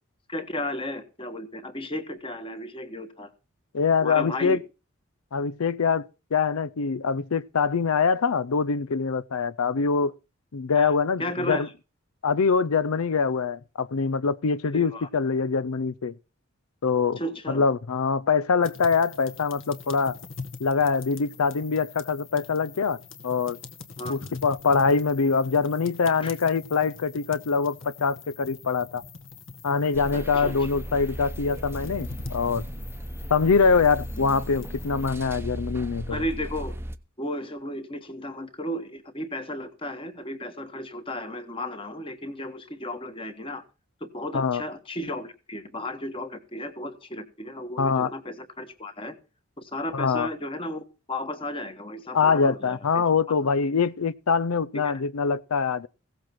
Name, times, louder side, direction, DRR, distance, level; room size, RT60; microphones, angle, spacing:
voice 1, 0.3-3.3 4.0-4.6 10.7-10.9 11.2-11.7 14.7-15.1 17.2-17.6 24.0-24.2 26.2-26.3 30.1-30.5 36.1-36.8 37.2-43.6 44.0-49.2 49.6-53.0 53.4-53.5 54.7-54.9, left 1 dB, 25° left, 1.5 m, -34 dB
voice 2, 3.7-4.6 5.3-10.1 10.5-11.7 12.2-16.1 16.8-17.2 17.5-20.2 20.6-23.0 23.2-23.6 24.1-29.0 29.6-32.6 33.3-36.2 44.3-44.6 47.8-48.1 49.9-50.3 52.1-55.9, left 5 dB, 90° left, 0.6 m, -24 dB
sound 1, 18.6-35.1, left 4 dB, 60° left, 1.9 m, -44 dB
sound 2, 29.9-37.0, right 1 dB, 10° right, 0.8 m, -36 dB
16.5 x 7.7 x 6.0 m
head